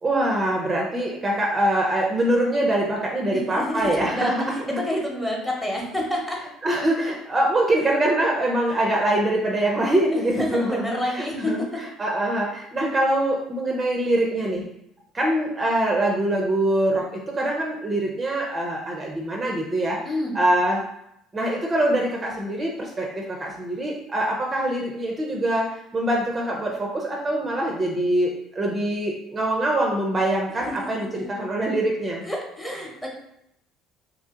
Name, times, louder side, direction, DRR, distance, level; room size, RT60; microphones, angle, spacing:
voice 1, 0.0-4.8 6.6-14.6 15.1-20.0 20.3-20.8 21.3-32.2, right 1 dB, 20° right, -1 dB, 0.5 m, -24 dB
voice 2, 3.3-6.4 10.1-11.8 20.1-20.4 30.7-31.3 32.2-33.1, left 1 dB, 10° left, -2 dB, 0.9 m, -29 dB
2.9 x 2.7 x 3.6 m, 0.78 s
cardioid pair, 115°, 0 cm